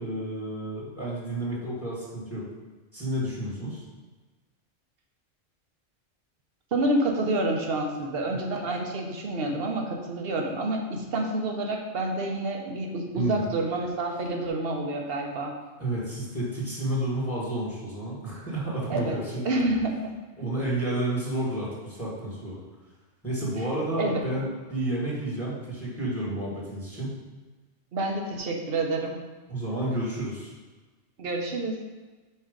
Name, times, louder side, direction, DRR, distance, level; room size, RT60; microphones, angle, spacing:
voice 1, 0.0-2.5 2.9-3.8 8.3-8.4 13.1-13.4 15.8-19.4 20.4-22.6 23.2-27.2 29.5-30.5, right 1 dB, 10° left, -6 dB, 1.6 m, -31 dB
voice 2, 6.7-15.5 18.9-19.1 19.4-20.1 24.0-24.2 27.9-29.2 31.2-31.8, right 2 dB, 50° right, 2 dB, 1.1 m, -28 dB
5.7 x 4.3 x 5.1 m, 1.3 s
omnidirectional pair, 1.3 m